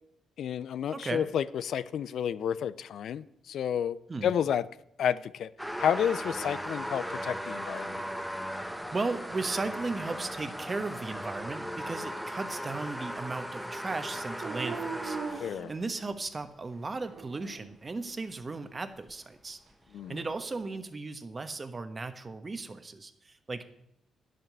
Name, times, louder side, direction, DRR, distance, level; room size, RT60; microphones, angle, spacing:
voice 1, 0.4-4.7 5.0-5.5 5.8-8.0 15.4-15.7 19.9-20.2, left 9 dB, 70° left, 0.4 m, -31 dB
voice 2, 0.9-1.3 4.1-4.3 8.9-19.6 20.1-23.7, right 3 dB, 30° right, 1.1 m, -36 dB
sound 1, 5.6-15.7 16.4-16.5 18.1-18.2 18.6-18.7 19.1-19.2 19.7-19.8, equal, ahead, 1.0 m, -37 dB
Dog, 14.4-16.3 16.9-17.7 20.0-20.9, right 6 dB, 65° right, 0.9 m, -41 dB
10.0 x 7.6 x 6.6 m
cardioid pair, 75°, 0 cm